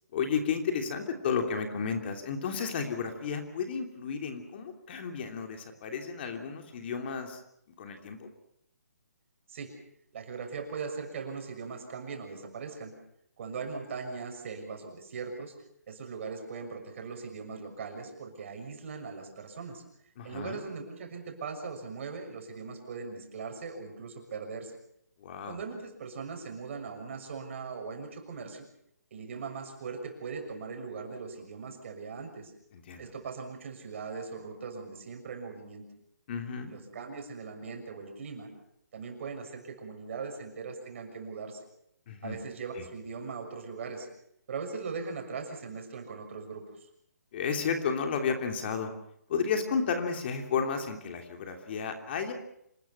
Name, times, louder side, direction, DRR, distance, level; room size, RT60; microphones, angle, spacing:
voice 1, 0.1-7.4 7.8-8.3 20.2-20.6 25.2-25.6 32.7-33.1 36.3-36.7 42.1-42.4 42.8-42.9 47.3-48.9 49.3-52.3, left 6 dB, 35° left, 5 dB, 3.0 m, -32 dB
voice 2, 10.1-13.0 13.4-15.5 15.9-19.8 20.2-24.7 25.4-28.6 29.1-32.5 33.0-35.9 36.7-38.5 38.9-41.6 42.2-44.1 44.5-46.6, right 5 dB, 45° right, 4 dB, 6.5 m, -40 dB
27.0 x 20.0 x 5.9 m, 0.73 s
hypercardioid pair, 160°, 9 cm